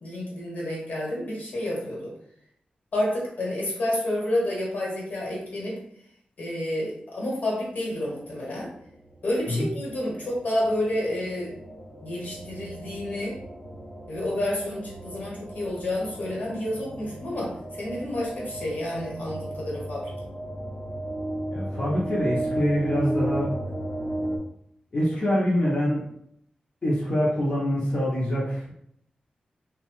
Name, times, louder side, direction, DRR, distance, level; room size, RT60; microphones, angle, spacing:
voice 1, 0.0-2.1 2.9-5.8 6.4-8.7 9.2-11.5 12.0-13.4 14.1-20.1, left 1 dB, 80° left, -4 dB, 1.2 m, -29 dB
sound 1, 8.4-24.4, right 1 dB, 5° left, 0.5 m, -35 dB
voice 2, 21.5-23.5 24.9-26.1 26.8-28.7, equal, 45° left, -6 dB, 0.7 m, -25 dB
2.7 x 2.2 x 2.9 m, 0.71 s
wide cardioid pair, 95°, 3 cm